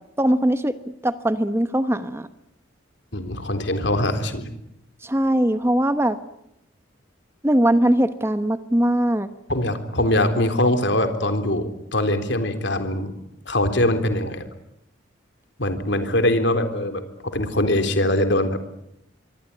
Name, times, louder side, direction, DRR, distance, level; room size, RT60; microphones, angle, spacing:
voice 1, 0.2-0.7 1.0-2.3 5.0-6.2 7.4-9.3, right 1 dB, 15° right, 11 dB, 1.0 m, -20 dB
voice 2, 3.1-4.5 9.5-13.1 13.5-14.5 15.6-18.6, left 1 dB, 60° left, 8 dB, 3.7 m, -22 dB
26.0 x 23.5 x 9.7 m, 0.80 s
head